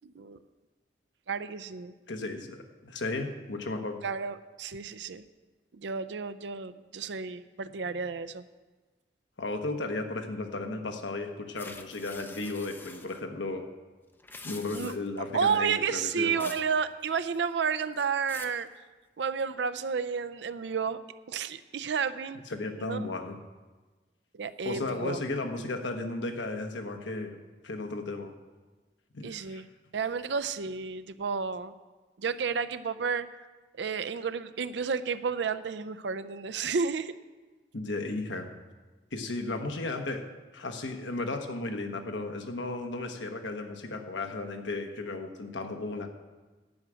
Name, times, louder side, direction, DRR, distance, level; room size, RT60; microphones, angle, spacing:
voice 1, 0.0-0.4 1.3-1.9 4.0-5.2 5.7-8.5 14.7-14.9 15.3-18.7 19.2-21.0 21.3-22.4 22.8-23.1 24.3-25.2 29.2-29.7 29.9-31.7 32.2-33.3 33.8-37.2, right 6 dB, 80° right, 13 dB, 0.5 m, -31 dB
voice 2, 2.1-4.0 9.4-13.7 14.4-16.5 22.5-23.4 24.6-27.4 27.6-28.3 29.1-29.6 37.7-38.5 39.1-40.2 40.5-46.1, left 2 dB, 90° left, 5 dB, 1.2 m, -34 dB
sound 1, 11.6-13.2 14.1-15.2 16.4-16.7 17.0-17.5 18.0-18.6, left 3 dB, 10° left, 0.4 m, -46 dB
10.5 x 6.3 x 9.0 m, 1.3 s
head